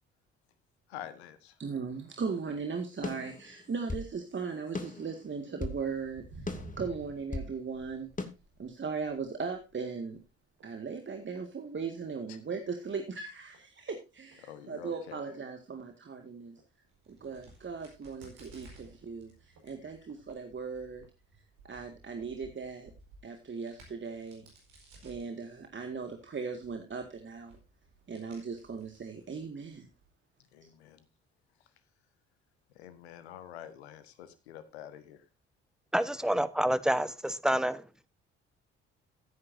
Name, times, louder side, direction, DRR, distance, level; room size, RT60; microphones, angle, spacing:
voice 1, 0.9-1.6 12.3-12.4 14.4-15.2 19.6-20.1 30.4-31.1 31.6-31.7 32.7-35.3, left 10 dB, 85° left, 11 dB, 1.5 m, -48 dB
voice 2, 1.6-8.1 8.6-10.2 10.6-16.6 17.1-21.0 21.6-22.9 23.2-24.5 25.0-27.6 28.1-29.9, right 5 dB, 35° right, 5 dB, 2.0 m, -38 dB
sound 1, 3.0-4.1 4.7-5.8 6.5-7.5 8.2-8.3, left 3 dB, 25° left, 2.4 m, -38 dB
Walk footsteps, 5.6-12.3 12.6-13.0 13.5-13.6 14.3-14.4 14.8-14.9 15.1-15.2 15.7-15.9 16.6-18.2 18.7-18.8 19.6-19.7 20.1-20.3 21.0-21.1, right 2 dB, 65° right, 6.0 m, -52 dB
Crack, 16.8-30.1, right 2 dB, 80° right, 4.8 m, -58 dB
voice 3, 35.9-37.8, equal, ahead, 14 dB, 1.1 m, -28 dB
15.5 x 9.6 x 2.7 m, 0.28 s
hypercardioid pair, 50°, 32 cm